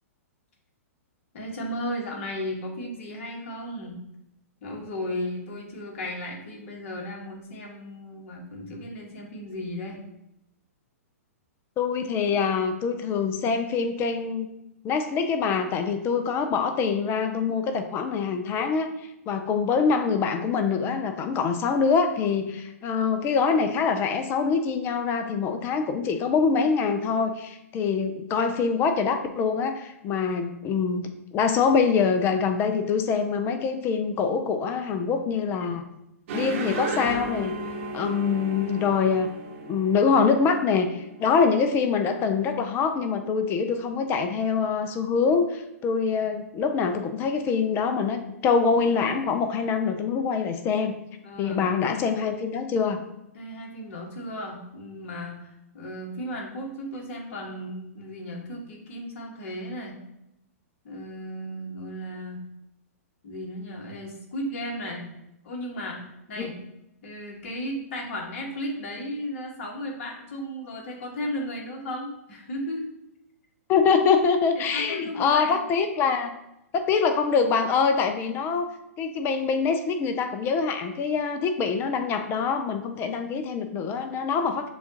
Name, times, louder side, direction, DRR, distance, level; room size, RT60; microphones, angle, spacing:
voice 1, 1.3-4.0 4.6-10.0 51.2-51.7 53.3-60.0 60.8-62.4 63.2-65.1 65.4-66.6 67.0-72.8 74.7-75.6, equal, 55° left, 0 dB, 1.4 m, -35 dB
voice 2, 11.8-14.5 14.8-35.8 36.3-37.5 37.9-39.3 39.6-51.0 51.4-53.0 66.4-66.5 73.7-76.3 76.7-78.7 79.0-84.7, left 5 dB, 30° left, 7 dB, 0.5 m, -24 dB
sound 1, 36.3-41.2, right 3 dB, 55° right, 1.0 m, -34 dB
6.9 x 2.4 x 2.9 m, 0.87 s
hypercardioid pair, 120°, 8 cm